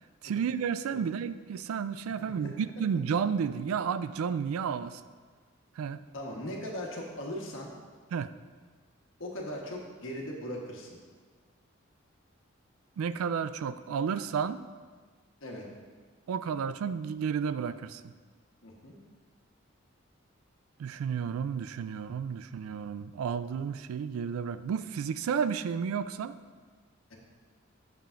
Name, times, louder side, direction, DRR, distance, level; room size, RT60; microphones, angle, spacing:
voice 1, 0.2-5.0 5.8-6.0 8.1-8.3 13.0-14.6 16.3-18.0 20.8-26.3, right 6 dB, 90° right, 14 dB, 0.3 m, -32 dB
voice 2, 2.2-2.5 6.1-7.7 9.2-11.0 15.4-15.7 18.6-19.0 27.1-27.2, equal, 70° left, -1 dB, 1.2 m, -39 dB
8.1 x 6.8 x 2.5 m, 1.5 s
head